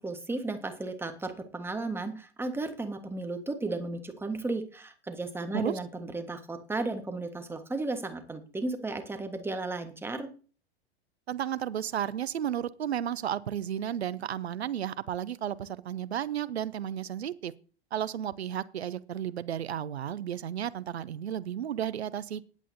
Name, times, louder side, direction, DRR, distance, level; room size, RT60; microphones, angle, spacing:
voice 1, 0.0-10.3, right 2 dB, 5° right, 1.4 m, -34 dB
voice 2, 11.3-17.5 17.9-22.4, right 10 dB, 75° right, 0.7 m, -33 dB
19.5 x 8.4 x 2.8 m
figure-of-eight pair, 95°, 32 cm